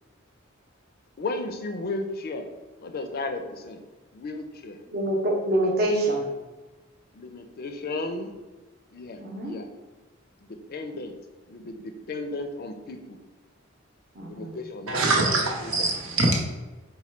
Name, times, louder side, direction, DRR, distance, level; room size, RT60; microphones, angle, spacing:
voice 1, 1.2-2.5 2.8-3.8 4.1-4.8 7.1-8.3 8.9-9.7 10.4-11.2 11.5-13.2 14.3-15.0 15.3-15.4 15.6-15.9, left 2 dB, 50° left, 0.4 m, -34 dB
voice 2, 4.9-6.2 9.2-9.5 14.2-14.5, right 1 dB, 50° right, 0.8 m, -25 dB
voice 3, 14.9-16.4, right 2 dB, 90° right, 0.9 m, -23 dB
4.2 x 2.2 x 4.3 m
head